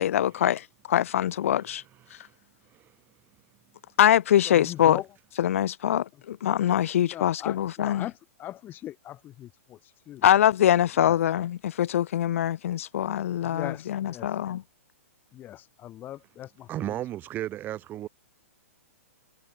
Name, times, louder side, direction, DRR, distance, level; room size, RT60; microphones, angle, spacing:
voice 1, 0.0-1.8 4.0-5.0 5.4-8.1 10.2-14.6, left 11 dB, 65° left, 0.6 m, -23 dB
voice 2, 4.4-5.1 7.0-9.8 10.1-10.2 11.0-11.2 13.4-14.3 15.3-17.0, left 13 dB, 25° left, 0.8 m, -40 dB
voice 3, 16.7-18.1, right 13 dB, 25° right, 0.7 m, -34 dB
hypercardioid pair, 130°, 8 cm